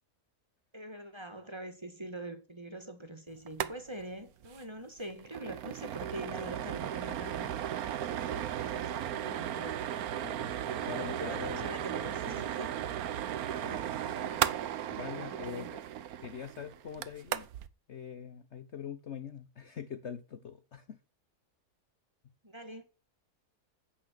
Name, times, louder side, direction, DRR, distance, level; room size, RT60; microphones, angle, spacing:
voice 1, 0.7-7.5 8.0-10.1 10.8-12.7 13.7-14.5 15.2-15.8 22.4-22.8, right 1 dB, 15° right, 2.0 m, -44 dB
sound 1, 3.5-3.7 4.0-4.1 4.4-4.6 5.0-17.7, right 10 dB, 70° right, 1.2 m, -36 dB
voice 2, 10.2-11.7 13.2-13.9 14.9-15.7 16.2-17.5 17.9-21.0, left 7 dB, 50° left, 1.0 m, -43 dB
9.9 x 8.4 x 6.5 m
omnidirectional pair, 1.7 m